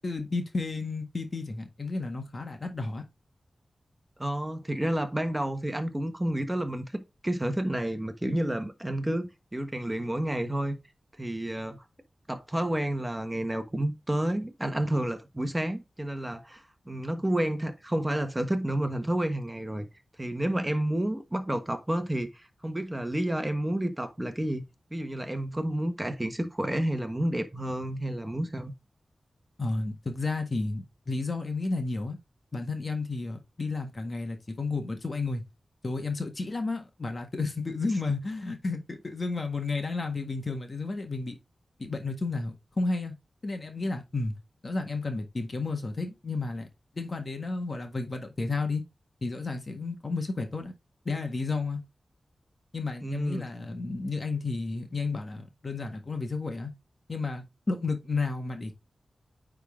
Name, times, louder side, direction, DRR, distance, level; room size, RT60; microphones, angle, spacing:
voice 1, 0.0-3.0 29.6-32.2 32.5-35.4 35.8-41.4 41.8-43.1 43.4-44.3 44.6-46.7 46.9-48.8 49.2-50.7 51.0-51.8 52.7-56.7 57.1-58.7, left 3 dB, 45° left, 1.6 m, -32 dB
voice 2, 4.2-10.7 11.2-11.8 12.3-19.9 20.2-24.6 24.9-28.7 38.1-38.2 53.0-53.4, right 1 dB, 15° right, 1.3 m, -30 dB
9.3 x 3.8 x 3.7 m
wide cardioid pair, 70°, 0 cm